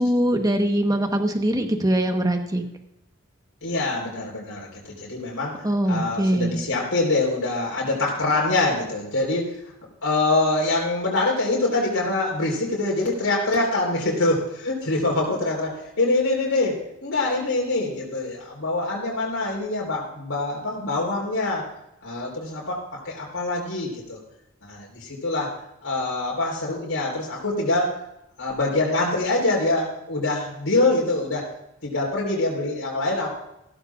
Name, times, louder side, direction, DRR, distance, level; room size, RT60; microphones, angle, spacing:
voice 1, 0.0-2.6 5.6-6.6, right 1 dB, 20° right, 5 dB, 1.2 m, -22 dB
voice 2, 3.6-9.6 10.0-21.7 22.0-24.2 24.6-25.5 25.8-27.9 28.4-31.5 31.8-33.3, left 2 dB, 80° left, -3 dB, 4.1 m, -24 dB
16.0 x 13.5 x 2.5 m, 0.84 s
head